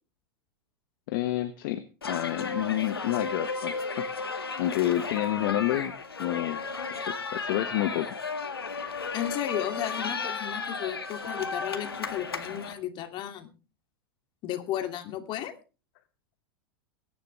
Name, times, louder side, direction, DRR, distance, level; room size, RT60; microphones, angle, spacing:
voice 1, 1.1-5.9 6.2-6.7 6.9-8.1, left 14 dB, 55° left, 12 dB, 1.1 m, -29 dB
sound 1, 2.0-12.7, left 4 dB, 85° left, 2.0 m, -34 dB
voice 2, 9.1-13.5 14.4-15.5, left 11 dB, 40° left, 7 dB, 2.6 m, -34 dB
22.0 x 11.0 x 3.3 m, 0.33 s
hypercardioid pair, 95°, 12 cm